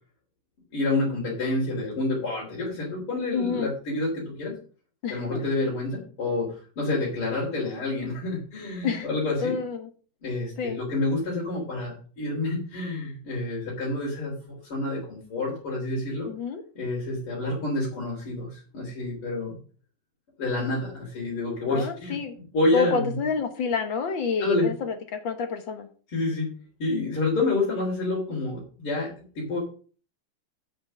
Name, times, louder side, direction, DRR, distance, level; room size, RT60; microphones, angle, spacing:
voice 1, 0.7-4.5 5.1-6.5 6.8-9.6 10.2-16.3 16.8-19.5 20.4-22.2 22.5-23.2 24.4-24.7 26.1-26.5 26.8-29.6, left 2 dB, 80° left, -5 dB, 4.4 m, -28 dB
voice 2, 3.3-3.7 5.0-5.4 8.8-9.1 9.4-9.9 10.6-10.8 16.3-16.6 21.7-22.3 22.7-25.9, left 5 dB, 65° left, 7 dB, 1.9 m, -28 dB
8.0 x 6.8 x 6.5 m, 0.40 s
omnidirectional pair, 2.4 m